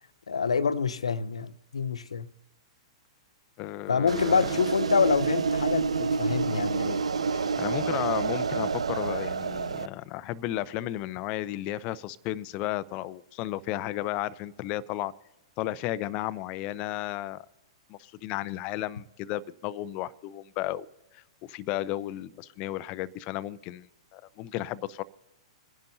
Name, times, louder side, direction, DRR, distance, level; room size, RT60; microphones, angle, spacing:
voice 1, 0.3-2.3 3.9-7.0, left 5 dB, 80° left, 0.6 m, -26 dB
voice 2, 3.6-4.6 7.3-15.1 15.6-17.5 17.9-20.9 21.1-23.9 24.1-25.0, left 14 dB, 40° left, 0.6 m, -33 dB
sound 1, 4.1-9.9, right 5 dB, 80° right, 0.4 m, -28 dB
26.5 x 10.5 x 2.7 m
hypercardioid pair, 110°, 3 cm